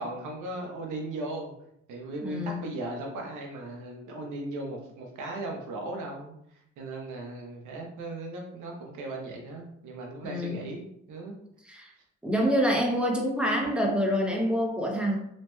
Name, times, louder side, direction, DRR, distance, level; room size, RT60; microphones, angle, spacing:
voice 1, 0.0-1.5 1.9-6.4 6.8-11.4, right 2 dB, 80° right, 1 dB, 0.9 m, -37 dB
voice 2, 2.2-2.7 10.2-10.7 11.7-11.9 12.2-15.2, equal, 5° right, -1 dB, 0.7 m, -27 dB
3.1 x 2.9 x 2.2 m, 0.73 s
cardioid pair, 90°, 30 cm